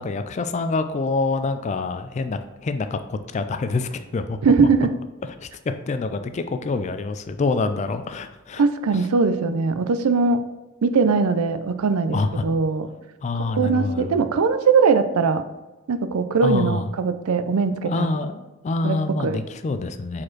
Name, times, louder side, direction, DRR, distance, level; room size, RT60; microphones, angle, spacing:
voice 1, 0.0-4.4 5.2-5.5 5.9-8.6 12.1-12.4 13.2-14.1 16.4-16.9 17.8-20.2, left 3 dB, 30° left, 9 dB, 0.3 m, -26 dB
voice 2, 4.4-4.9 8.6-10.4 10.8-12.9 13.4-15.4 15.9-18.2 18.8-19.4, right 4 dB, 85° right, 10 dB, 0.5 m, -20 dB
4.9 x 4.2 x 4.5 m, 1.1 s
head